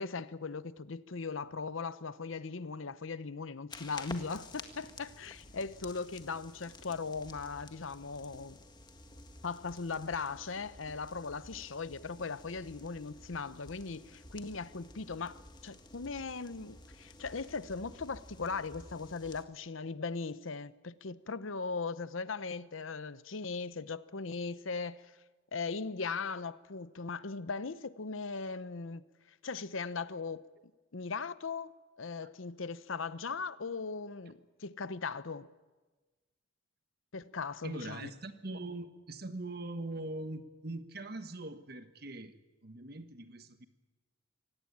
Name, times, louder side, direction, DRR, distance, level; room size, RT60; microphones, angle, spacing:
voice 1, 0.0-8.6 9.4-25.1 25.5-29.0 29.4-30.4 30.9-31.7 32.0-35.5 37.1-38.1, left 4 dB, 75° left, 0.8 m, -39 dB
sound 1, 3.7-19.4, left 2 dB, 20° left, 1.6 m, -52 dB
voice 2, 37.6-42.3 42.6-43.7, right 2 dB, 50° right, 1.4 m, -42 dB
24.5 x 18.0 x 8.7 m
head